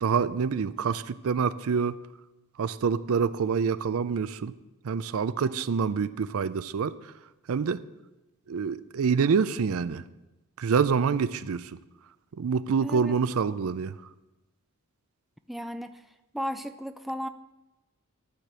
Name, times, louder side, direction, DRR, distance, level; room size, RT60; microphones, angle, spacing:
voice 1, 0.0-2.0 2.6-4.5 4.8-7.1 7.5-7.8 8.5-10.1 10.6-11.7 12.4-13.9, right 6 dB, 70° right, 15 dB, 0.4 m, -26 dB
voice 2, 12.8-13.2 15.5-16.0 16.3-17.3, equal, ahead, 8 dB, 0.3 m, -35 dB
12.0 x 5.0 x 7.5 m, 1.0 s
head